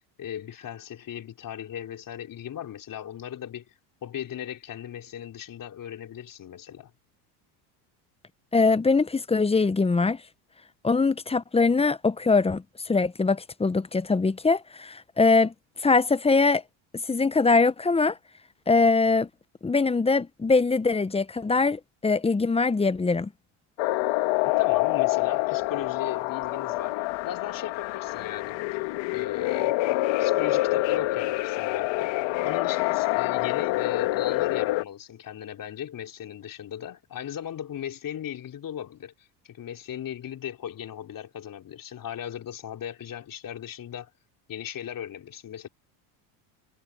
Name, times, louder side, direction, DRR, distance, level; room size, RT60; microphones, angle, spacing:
voice 1, 0.2-3.7 4.0-6.9 24.4-28.6 29.1-29.8 30.2-39.1 39.4-44.1 44.5-45.7, left 10 dB, 40° left, 3.4 m, -37 dB
voice 2, 8.5-10.2 10.8-15.5 15.8-16.6 17.1-18.2 18.7-19.3 19.6-23.3, left 4 dB, 10° left, 0.9 m, -22 dB
sound 1, 23.8-34.8, left 19 dB, 65° left, 2.0 m, -26 dB
supercardioid pair, 90°, 49 cm